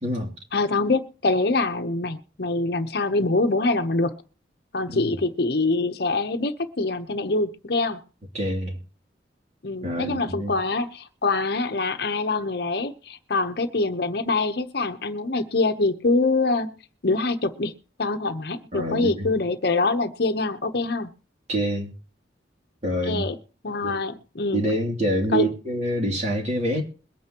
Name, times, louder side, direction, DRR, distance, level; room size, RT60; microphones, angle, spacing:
voice 1, 0.5-4.2 4.7-8.0 9.6-16.8 17.0-17.7 18.0-21.1 23.1-23.3 23.6-24.8 25.3-25.5, left 3 dB, 60° left, 0.9 m, -24 dB
voice 2, 8.3-8.8 9.8-10.5 18.7-19.3 21.5-21.9 22.8-23.3 23.8-24.0 24.5-26.8, equal, 40° right, 2.8 m, -26 dB
22.0 x 9.3 x 3.0 m
head